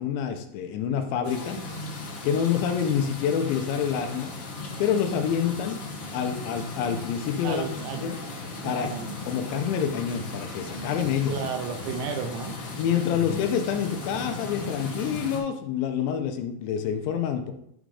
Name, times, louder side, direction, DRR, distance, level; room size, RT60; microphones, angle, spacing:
voice 1, 0.0-1.6 2.2-4.3 4.8-5.8 6.1-7.7 8.0-8.2 8.6-8.9 9.3-11.5 12.8-17.5, left 8 dB, 80° left, 6 dB, 3.1 m, -27 dB
sound 1, 1.2-15.4, left 3 dB, 65° left, 1.4 m, -37 dB
voice 2, 7.4-8.1 8.6-9.1 11.3-12.6, right 6 dB, 80° right, 5 dB, 3.2 m, -33 dB
11.5 x 3.9 x 4.8 m, 0.72 s
omnidirectional pair, 5.2 m